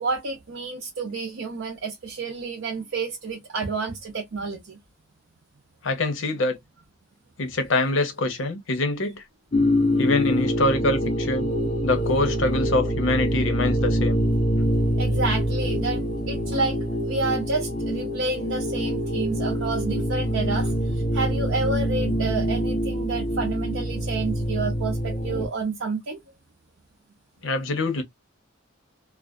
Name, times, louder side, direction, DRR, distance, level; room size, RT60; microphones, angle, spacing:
voice 1, 0.0-4.8 15.0-16.8 17.1-20.7 21.1-26.2, right 3 dB, 90° right, 0.6 m, -29 dB
voice 2, 5.8-6.6 7.4-9.2 10.0-11.5 11.8-14.2 27.4-28.0, left 2 dB, 75° left, 0.8 m, -25 dB
sound 1, 9.5-25.5, equal, 35° left, 0.5 m, -25 dB
2.4 x 2.2 x 2.3 m
head